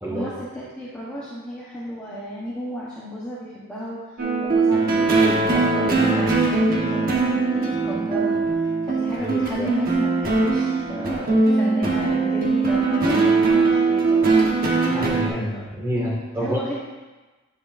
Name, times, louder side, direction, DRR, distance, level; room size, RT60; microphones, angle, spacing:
voice 1, 0.1-8.4 8.8-14.5 15.9-16.7, equal, 5° left, -9 dB, 0.9 m, -33 dB
sound 1, 4.2-15.3, right 3 dB, 40° right, 1.0 m, -20 dB
voice 2, 9.2-9.7 14.8-16.6, equal, 15° right, -5 dB, 1.8 m, -28 dB
9.7 x 7.1 x 2.5 m, 1.2 s
head